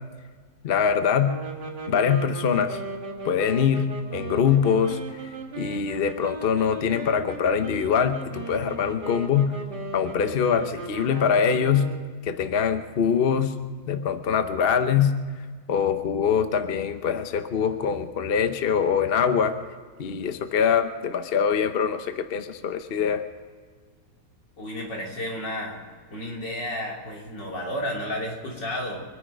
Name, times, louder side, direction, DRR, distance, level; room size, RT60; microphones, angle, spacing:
voice 1, 0.6-1.3 1.9-2.8 3.2-9.5 9.9-11.8 12.2-13.5 13.9-15.1 15.7-19.6 20.0-23.2, left 7 dB, 45° left, 9 dB, 0.8 m, -23 dB
sound 1, 1.2-12.2, right 3 dB, 30° right, 1.8 m, -37 dB
voice 2, 24.6-25.8 26.1-29.0, left 1 dB, 75° left, -2 dB, 3.8 m, -32 dB
24.0 x 10.0 x 5.3 m, 1.5 s
omnidirectional pair, 1.9 m